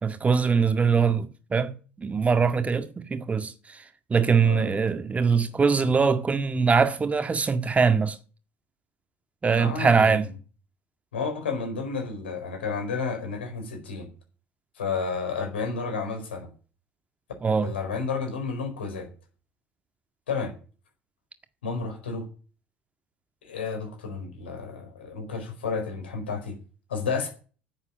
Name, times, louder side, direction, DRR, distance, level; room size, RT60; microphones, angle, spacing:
voice 1, 0.0-3.8 4.1-8.2 9.4-10.3 17.4-17.7, right 5 dB, 25° right, 1.8 m, -22 dB
voice 2, 4.4-4.7 9.4-10.2 11.1-14.1 14.7-16.5 17.6-19.1 20.3-20.5 21.6-22.3 23.4-26.6 26.9-27.3, left 5 dB, 75° left, 4.6 m, -31 dB
10.0 x 8.4 x 9.5 m
figure-of-eight pair, 60°, 6 cm